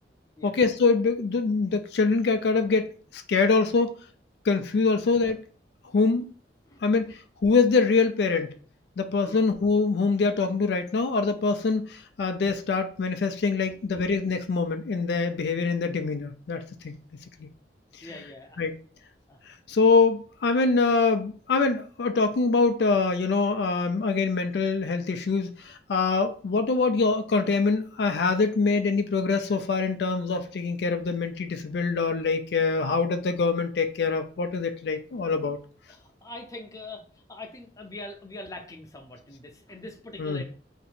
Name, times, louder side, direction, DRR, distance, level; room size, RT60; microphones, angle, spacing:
voice 1, 0.4-2.9 3.1-3.9 4.4-5.4 5.9-6.3 6.8-8.5 9.0-17.0 17.4-17.5 18.0-18.1 18.6-18.8 19.7-35.6 40.2-40.4, left 4 dB, 70° left, 7 dB, 0.4 m, -24 dB
voice 2, 18.0-18.6 19.3-19.4 35.9-40.4, left 2 dB, 20° left, 2 dB, 0.6 m, -43 dB
2.9 x 2.6 x 4.2 m, 0.42 s
head